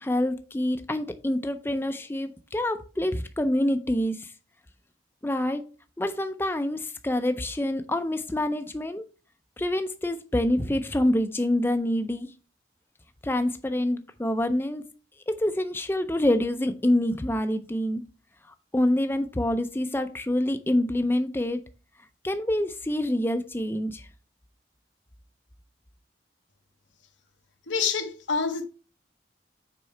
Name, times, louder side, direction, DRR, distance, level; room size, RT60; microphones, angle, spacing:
voice 1, 0.0-4.3 5.2-5.6 6.0-9.0 9.6-12.3 13.2-14.8 15.3-18.0 18.7-21.6 22.2-24.1, left 1 dB, 10° left, 0.4 m, -26 dB
voice 2, 27.7-28.7, left 5 dB, 85° left, 1.0 m, -27 dB
6.3 x 4.6 x 4.4 m
head